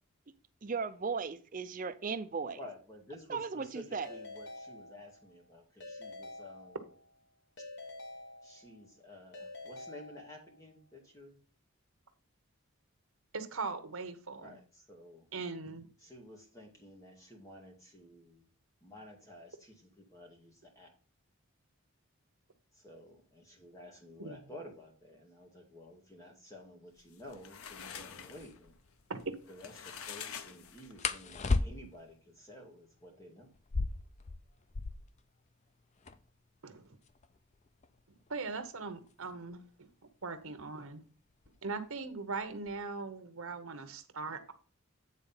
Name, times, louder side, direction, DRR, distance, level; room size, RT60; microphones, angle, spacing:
voice 1, 0.6-2.6 3.3-4.1, right 5 dB, 40° right, 11 dB, 0.5 m, -36 dB
voice 2, 2.5-6.8 7.6-7.7 8.4-11.4 14.4-15.3 16.0-18.5 18.8-20.9 22.7-28.7 29.5-33.5, left 1 dB, 15° left, 1 dB, 1.9 m, -52 dB
Keyboard (musical) / Ringtone, 4.0-5.4 5.8-7.1 7.6-8.9 9.3-10.7, left 2 dB, 50° left, 1.2 m, -48 dB
voice 3, 13.3-14.6 15.3-15.9 24.2-24.4 29.1-29.3 36.6-37.0 38.3-39.9 40.2-41.0 41.6-44.5, right 4 dB, 75° right, 9 dB, 1.1 m, -40 dB
sound 1, 27.0-31.2, left 7 dB, 80° left, 0.7 m, -47 dB
sound 2, 28.3-28.5 31.0-32.1 33.5-35.2 35.5-35.6 35.8-36.4 37.0-39.6 40.6-40.9 41.3-41.8 42.1-42.8, left 3 dB, 30° left, 0.4 m, -35 dB
9.0 x 3.9 x 5.5 m, 0.39 s
head